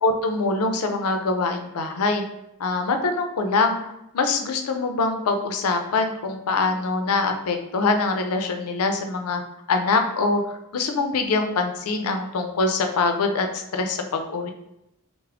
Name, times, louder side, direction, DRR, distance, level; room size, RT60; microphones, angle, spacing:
voice 1, 0.0-2.2 2.6-9.4 9.7-14.5, left 3 dB, 85° left, 6 dB, 0.4 m, -24 dB
3.4 x 2.0 x 3.4 m, 0.85 s
head